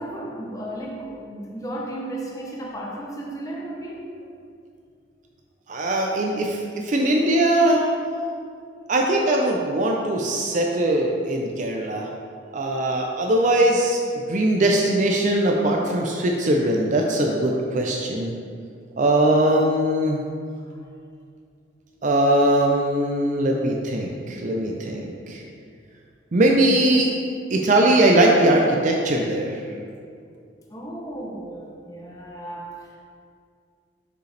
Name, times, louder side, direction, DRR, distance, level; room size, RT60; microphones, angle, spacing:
voice 1, 0.0-4.1 20.7-20.9 27.0-27.1 30.7-33.0, right 1 dB, 20° left, -3 dB, 0.6 m, -34 dB
voice 2, 5.7-7.8 8.9-12.1 12.5-18.3 19.0-20.2 22.0-25.4 26.3-27.1 27.5-29.6, right 1 dB, 40° right, 0 dB, 0.5 m, -20 dB
6.4 x 5.4 x 3.3 m, 2.3 s
head